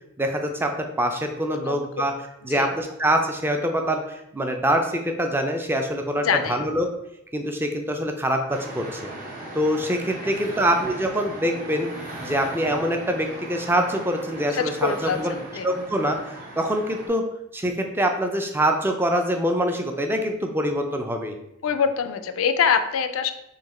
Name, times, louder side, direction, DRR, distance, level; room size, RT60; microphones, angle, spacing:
voice 1, 0.2-2.1 2.4-6.9 7.3-9.1 9.5-11.9 12.2-15.4 15.6-16.2 16.6-17.3 17.5-21.3, equal, 10° right, 4 dB, 0.4 m, -24 dB
voice 2, 6.2-6.7 10.2-10.7 14.5-15.7 21.6-23.3, left 6 dB, 80° left, 9 dB, 0.4 m, -25 dB
sound 1, 8.5-17.1, right 1 dB, 40° right, 1.0 m, -38 dB
3.9 x 2.8 x 4.1 m, 0.82 s
head